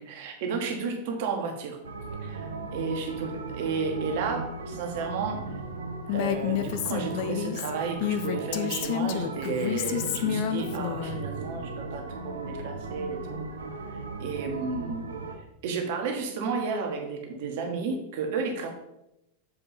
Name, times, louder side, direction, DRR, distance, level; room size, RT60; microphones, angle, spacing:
voice 1, 0.0-1.8 2.2-5.4 6.1-13.4 13.9-15.1 15.6-18.7, right 5 dB, 50° right, 3 dB, 1.4 m, -32 dB
sound 1, 1.8-15.4, right 3 dB, 70° right, 0.9 m, -37 dB
Female speech woman speaking, 6.1-11.2, left 10 dB, 45° left, 0.5 m, -29 dB
7.5 x 4.5 x 4.3 m, 0.88 s
figure-of-eight pair, 90°, 0 cm